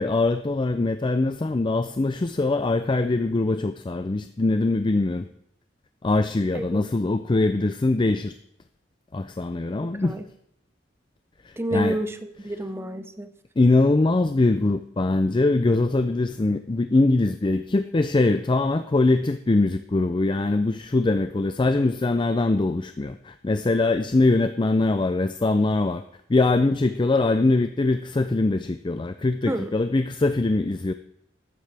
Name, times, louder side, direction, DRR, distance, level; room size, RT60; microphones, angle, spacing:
voice 1, 0.0-5.3 6.0-8.3 9.1-10.2 11.4-12.0 13.6-26.0 26.3-30.9, left 2 dB, 25° left, 9 dB, 0.4 m, -22 dB
voice 2, 11.6-13.3 29.5-29.7, right 1 dB, 15° right, 9 dB, 0.8 m, -29 dB
14.0 x 10.5 x 3.4 m, 0.74 s
head